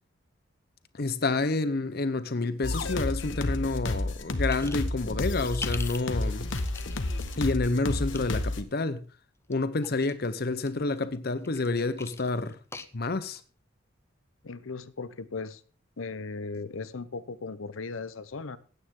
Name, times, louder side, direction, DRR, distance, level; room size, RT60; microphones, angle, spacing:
voice 1, 0.9-6.5 7.3-9.0 9.5-12.6 12.9-13.4, left 3 dB, 50° left, 0.8 m, -29 dB
sound 1, 2.6-8.6, left 2 dB, 70° left, 1.3 m, -31 dB
sound 2, 4.5-4.9 5.3-7.4 7.9-8.2 9.4-10.2 10.6-13.4, left 4 dB, 15° left, 0.7 m, -42 dB
voice 2, 14.4-15.6 16.0-18.6, left 4 dB, 90° left, 0.8 m, -37 dB
16.0 x 9.4 x 3.7 m
head